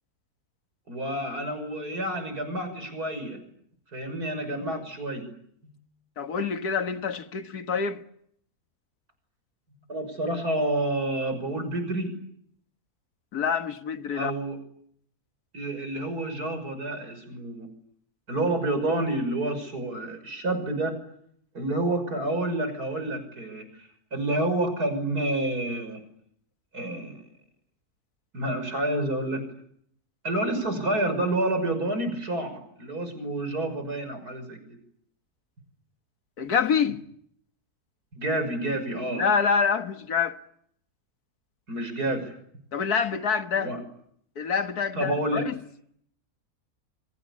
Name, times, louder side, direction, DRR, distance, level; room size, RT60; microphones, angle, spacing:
voice 1, 0.9-3.4 3.9-5.3 5.6-5.7 9.9-12.1 14.1-14.6 15.5-17.7 18.3-21.0 21.5-26.0 26.7-27.2 28.3-29.4 30.2-34.8 38.1-39.2 41.7-42.3 43.5-43.8 44.9-45.5, right 1 dB, 80° right, 6.7 m, -29 dB
voice 2, 6.2-8.0 13.3-14.3 36.4-37.0 39.2-40.4 42.7-43.8 44.4-45.6, left 6 dB, 80° left, 2.0 m, -26 dB
27.5 x 24.5 x 8.5 m
omnidirectional pair, 1.6 m